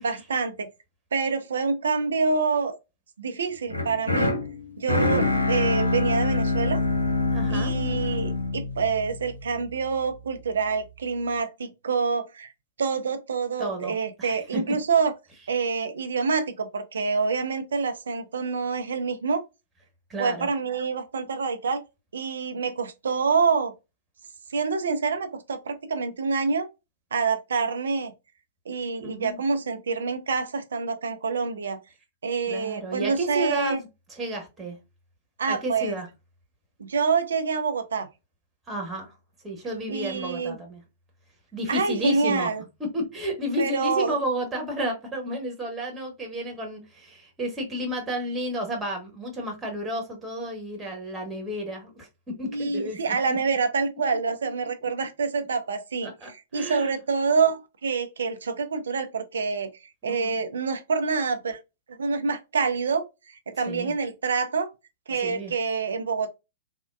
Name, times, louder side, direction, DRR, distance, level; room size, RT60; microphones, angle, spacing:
voice 1, 0.0-0.7 1.1-2.8 3.2-4.3 4.8-6.8 7.5-12.5 12.8-15.1 15.5-19.4 20.2-21.8 22.1-23.7 24.5-26.7 27.1-28.1 28.7-31.8 32.2-33.8 35.4-36.0 36.8-38.1 39.9-40.6 41.7-42.6 43.6-44.2 52.5-59.7 60.0-61.6 61.9-64.7 65.1-66.3, right 5 dB, 65° right, 0.5 m, -26 dB
sound 1, 3.7-9.8, left 3 dB, 80° left, 0.8 m, -25 dB
voice 2, 7.3-7.7 13.6-14.6 20.1-20.5 29.0-29.4 32.5-34.8 35.5-36.1 38.7-39.1 39.4-40.8 41.5-42.5 42.8-52.1 52.4-53.4 56.2-56.9 60.0-60.3 63.7-63.9 65.2-65.5, equal, 15° right, 1.1 m, -32 dB
3.6 x 2.1 x 2.3 m
figure-of-eight pair, 105°, 0 cm